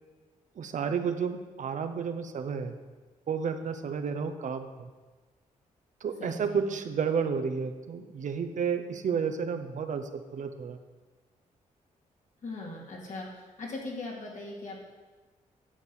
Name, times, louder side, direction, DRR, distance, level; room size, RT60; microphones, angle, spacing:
voice 1, 0.5-2.8 3.3-4.9 6.0-10.8, right 6 dB, 60° right, 8 dB, 0.8 m, -31 dB
voice 2, 6.2-6.6 12.4-14.8, left 2 dB, 60° left, -2 dB, 2.6 m, -39 dB
9.8 x 4.5 x 7.2 m, 1.3 s
cardioid pair, 70°, 14 cm